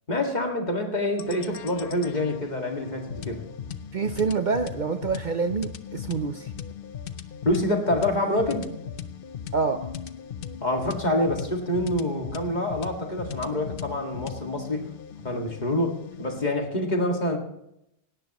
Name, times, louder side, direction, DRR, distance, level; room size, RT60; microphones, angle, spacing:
voice 1, 0.1-3.4 7.4-8.7 10.6-14.8 15.2-17.4, left 1 dB, 40° left, 2 dB, 2.1 m, -26 dB
sound 1, 1.2-16.5, left 8 dB, 55° left, 0.9 m, -39 dB
voice 2, 3.9-6.5 9.5-9.9, right 5 dB, 50° right, 8 dB, 0.7 m, -27 dB
17.5 x 17.5 x 3.0 m, 0.81 s
omnidirectional pair, 1.2 m